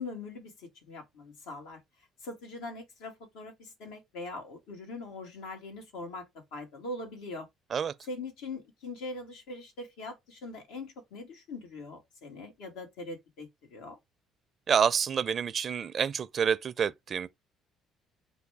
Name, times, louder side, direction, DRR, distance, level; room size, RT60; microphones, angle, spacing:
voice 1, 0.0-1.8 2.2-7.5 8.1-14.0, left 2 dB, 90° left, 1.6 m, -42 dB
voice 2, 14.7-17.3, right 7 dB, 45° right, 0.4 m, -28 dB
4.7 x 2.3 x 3.4 m
cardioid pair, 90°, 0 cm